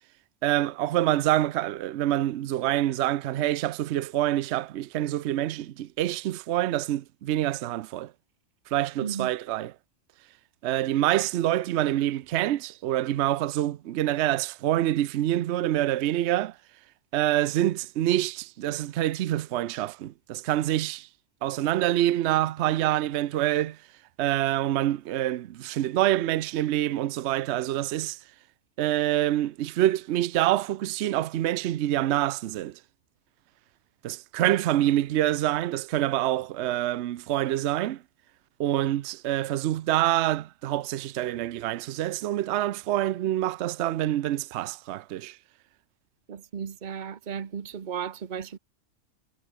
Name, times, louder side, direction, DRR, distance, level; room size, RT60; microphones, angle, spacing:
voice 1, 0.4-8.1 8.7-9.7 10.6-16.6 17.1-21.1 21.4-23.8 24.2-28.2 28.8-32.8 34.0-38.0 38.6-45.4, right 13 dB, 70° right, 0.8 m, -26 dB
voice 2, 9.0-9.3 46.3-48.6, right 7 dB, 40° right, 1.0 m, -35 dB
omnidirectional pair, 1.3 m